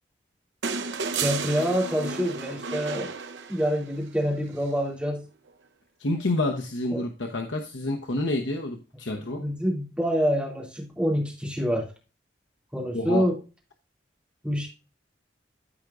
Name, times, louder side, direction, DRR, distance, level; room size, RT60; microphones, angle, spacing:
sound 1, 0.6-4.0 5.5-5.6, right 5 dB, 85° right, 0.8 m, -32 dB
voice 1, 1.1-3.1 3.5-5.2 6.9-7.0 9.4-11.9 12.7-13.4 14.4-14.7, equal, 5° right, -2 dB, 2.5 m, -26 dB
voice 2, 6.0-9.4 12.9-13.2, left 2 dB, 90° left, 3 dB, 1.0 m, -28 dB
14.0 x 4.7 x 2.6 m, 0.31 s
head